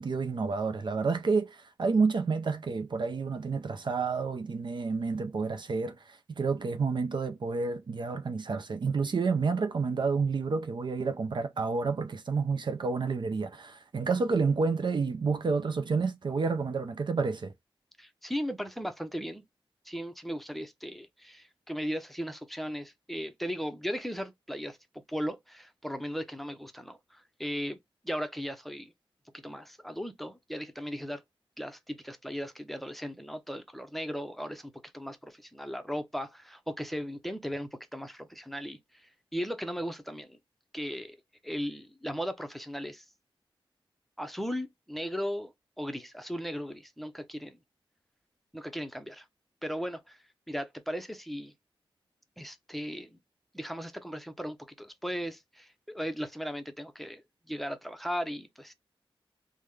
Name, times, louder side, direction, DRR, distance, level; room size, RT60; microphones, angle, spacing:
voice 1, 0.0-17.5, right 4 dB, 55° right, 0.5 m, -29 dB
voice 2, 18.0-19.4 19.8-24.8 25.1-27.8 28.0-28.9 29.3-31.2 31.6-40.4 40.7-41.2 41.4-43.0 44.2-47.6 48.5-49.3 49.6-50.2 50.5-51.5 52.4-53.2 53.5-58.7, equal, ahead, 0.7 m, -37 dB
3.5 x 2.1 x 3.1 m
cardioid pair, 65°, 9 cm